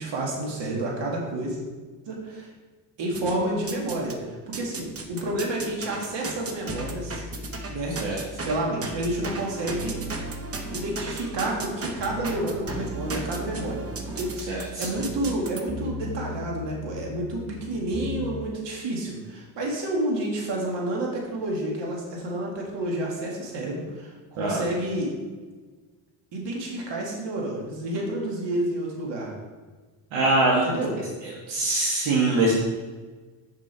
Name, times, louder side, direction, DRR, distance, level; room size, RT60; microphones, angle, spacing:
voice 1, 0.0-1.6 2.1-2.5 3.0-7.2 7.7-8.0 8.5-10.0 10.7-13.8 14.2-25.1 26.3-29.3 30.6-30.9, right 1 dB, 60° right, -1 dB, 2.2 m, -30 dB
sound 1, 3.1-4.2 4.5-15.6, right 3 dB, 30° right, 1.0 m, -36 dB
sound 2, 6.7-9.4 9.7-11.7 12.0-15.4 15.7-18.3 18.6-18.7, left 1 dB, ahead, 1.2 m, -38 dB
voice 2, 14.4-14.9 24.4-24.6 30.1-30.7 31.0-32.5, right 2 dB, 75° right, -4 dB, 1.6 m, -24 dB
6.7 x 5.2 x 4.5 m, 1.4 s
supercardioid pair, 85°, 48 cm